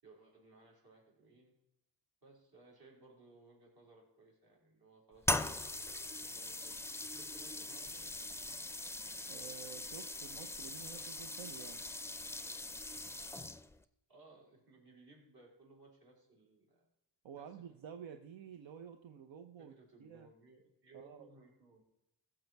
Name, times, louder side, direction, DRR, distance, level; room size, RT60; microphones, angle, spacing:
voice 1, 0.0-1.6 2.2-5.9 6.2-8.0 14.1-16.9 17.3-17.6 19.6-21.8, right 3 dB, 55° right, -2 dB, 4.6 m, -61 dB
sound 1, 5.2-13.8, left 2 dB, 5° left, 0.4 m, -41 dB
voice 2, 9.3-11.9 17.2-19.7 20.0-20.3 20.9-21.3, right 8 dB, 85° right, 6 dB, 0.8 m, -51 dB
15.0 x 7.0 x 4.6 m, 0.86 s
cardioid pair, 85°, 45 cm